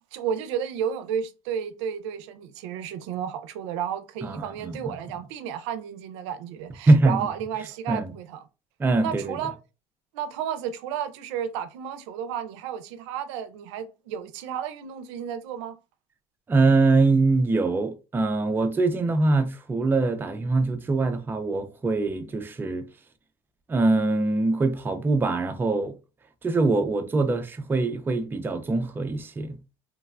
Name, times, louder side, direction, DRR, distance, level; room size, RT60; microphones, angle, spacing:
voice 1, 0.1-8.4 9.0-9.5 10.1-15.7, right 8 dB, 90° right, 0.4 m, -32 dB
voice 2, 4.2-5.0 6.9-7.3 7.9-8.1 8.8-9.4 16.5-22.9 23.7-25.9 26.4-29.6, right 3 dB, 15° right, 0.4 m, -23 dB
3.2 x 2.1 x 2.3 m
supercardioid pair, 115°, 15 cm